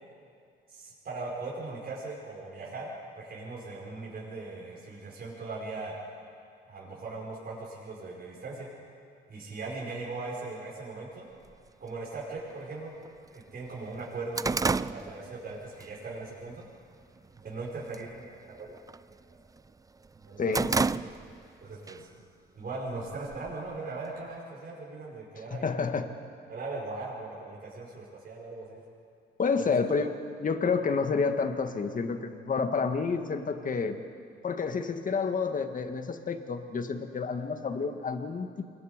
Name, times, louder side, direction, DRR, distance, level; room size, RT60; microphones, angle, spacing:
voice 1, 0.7-5.9 6.7-8.7 9.3-11.3 11.8-13.0 13.3-16.6 17.3-18.8 20.1-20.6 21.6-22.2 22.6-25.9 26.5-28.8 29.5-29.7, right 3 dB, 50° right, -4 dB, 5.4 m, -39 dB
sound 1, 11.5-11.6 12.5-12.6 13.1-13.2 13.5-15.9 16.3-16.6 17.0-17.5 17.8-18.1 18.4-19.7 20.0-21.5 21.9-22.0 22.9-23.8, right 4 dB, 15° right, 0.4 m, -31 dB
voice 2, 20.4-20.7 25.5-26.1 29.4-30.1 30.4-34.0 34.4-38.6, left 5 dB, 40° left, 7 dB, 1.9 m, -29 dB
28.0 x 21.5 x 5.2 m, 2.3 s
cardioid pair, 90°, 20 cm